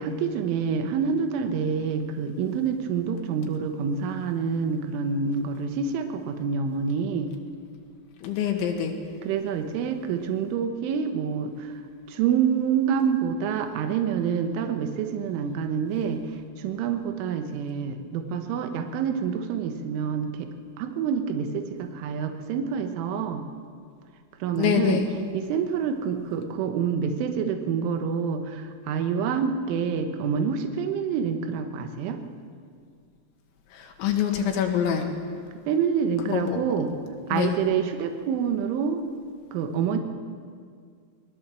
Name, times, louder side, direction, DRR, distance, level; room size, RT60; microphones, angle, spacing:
voice 1, 0.0-7.3 9.2-11.7 12.1-20.5 20.8-23.4 24.4-25.0 25.3-32.2 35.7-36.9 37.3-39.0 39.5-40.0, right 6 dB, 80° right, 6 dB, 3.7 m, -27 dB
voice 2, 8.2-8.9 24.5-25.1 33.7-35.1 36.3-36.6 37.3-37.5, left 8 dB, 75° left, 3 dB, 4.1 m, -25 dB
22.5 x 19.5 x 7.6 m, 2.1 s
omnidirectional pair, 5.6 m